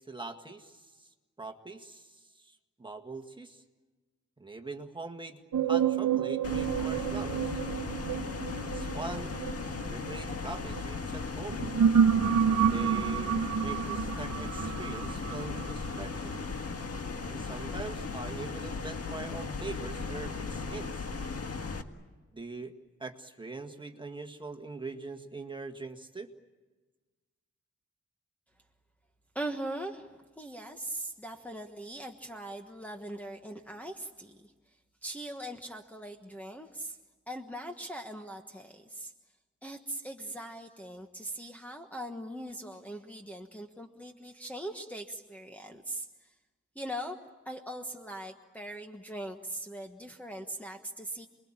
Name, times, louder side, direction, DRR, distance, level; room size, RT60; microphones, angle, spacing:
voice 1, 0.1-1.1 1.4-3.6 4.4-5.4 5.7-7.6 8.7-9.4 9.9-11.6 12.4-16.4 17.2-21.1 22.3-22.7 23.0-26.3, right 3 dB, 15° right, 5 dB, 1.9 m, -42 dB
sound 1, 5.5-10.8 11.4-16.4, right 7 dB, 85° right, 1.2 m, -29 dB
sound 2, 6.4-21.8, left 4 dB, 55° left, 1.8 m, -37 dB
voice 2, 29.3-37.0 37.3-39.1 39.6-46.3 46.7-47.2 47.4-51.3, right 1 dB, 5° left, 1 dB, 1.3 m, -41 dB
29.0 x 22.0 x 8.9 m, 1.3 s
wide cardioid pair, 165°, 29 cm